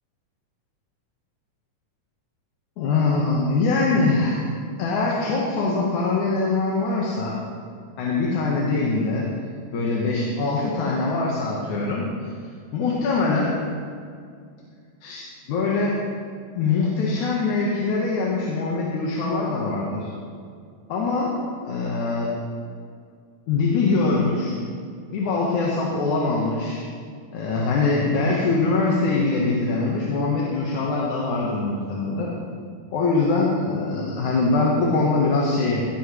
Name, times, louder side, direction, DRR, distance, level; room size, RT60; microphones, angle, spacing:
voice 1, 2.8-4.4 4.8-7.4 8.0-9.3 9.7-12.3 12.7-13.5 15.0-16.0 16.5-20.1 20.9-21.4 21.6-22.3 23.5-24.6 25.1-26.8 27.3-32.4 32.9-35.8, left 3 dB, 75° left, -4 dB, 2.7 m, -23 dB
17.0 x 10.5 x 3.2 m, 2.2 s
omnidirectional pair, 3.6 m